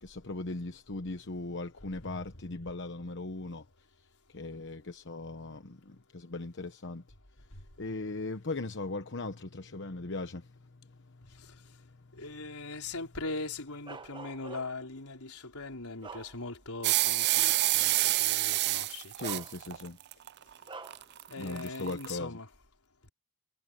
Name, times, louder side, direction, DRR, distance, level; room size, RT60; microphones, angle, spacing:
voice 1, 0.0-3.7 4.3-7.0 7.8-12.2 19.2-20.0 21.4-22.4, left 2 dB, 55° left, 1.1 m, -39 dB
voice 2, 1.9-2.3 7.4-7.7 11.2-11.8 12.1-19.2 21.3-22.6 23.0-23.1, left 3 dB, 80° left, 4.5 m, -41 dB
Bark, 13.9-14.9 15.5-16.8 17.2-17.4 18.5-18.6 19.2-20.0 20.7-21.1, right 4 dB, 20° right, 1.0 m, -46 dB
sound 1, 16.8-22.1, right 17 dB, 50° right, 0.4 m, -28 dB
head